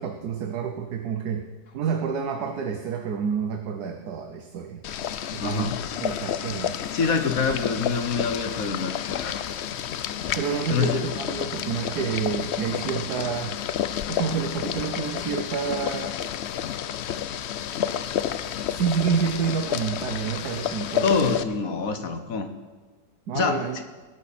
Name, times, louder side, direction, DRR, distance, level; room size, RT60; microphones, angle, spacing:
voice 1, 0.0-1.5 1.7-4.8 5.3-5.7 6.0-6.8 10.3-13.6 14.1-16.1 18.7-21.1 23.3-23.8, right 7 dB, 70° right, 5 dB, 1.4 m, -28 dB
Boiling, 4.8-21.4, left 9 dB, 90° left, 0.5 m, -30 dB
voice 2, 5.4-5.8 6.9-9.3 10.7-11.0 21.0-22.5 23.3-23.8, left 5 dB, 55° left, 8 dB, 1.5 m, -26 dB
19.5 x 11.0 x 4.3 m, 1.4 s
omnidirectional pair, 1.9 m